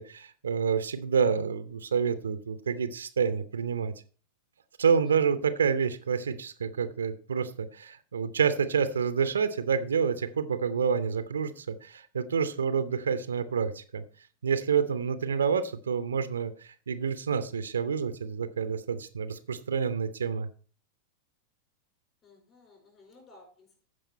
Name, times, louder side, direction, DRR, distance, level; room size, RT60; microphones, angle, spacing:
voice 1, 0.0-3.9 4.8-14.0 14.4-20.5, right 6 dB, 70° right, 12 dB, 0.7 m, -28 dB
voice 2, 22.2-23.9, left 2 dB, 30° left, 2 dB, 4.7 m, -56 dB
15.0 x 5.1 x 4.2 m, 0.39 s
figure-of-eight pair, 90°, 0 cm